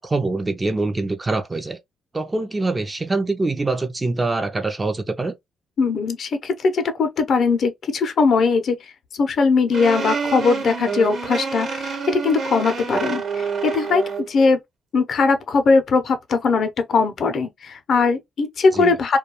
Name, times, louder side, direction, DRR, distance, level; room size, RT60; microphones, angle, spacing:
voice 1, 0.0-1.8 2.1-5.3 18.7-19.0, right 3 dB, 20° right, 0.5 m, -24 dB
voice 2, 5.8-8.8 9.1-14.6 14.9-19.2, left 4 dB, 60° left, 0.6 m, -20 dB
sound 1, 9.7-14.3, right 5 dB, 55° right, 1.0 m, -27 dB
2.3 x 2.2 x 2.8 m
cardioid pair, 90°, 0 cm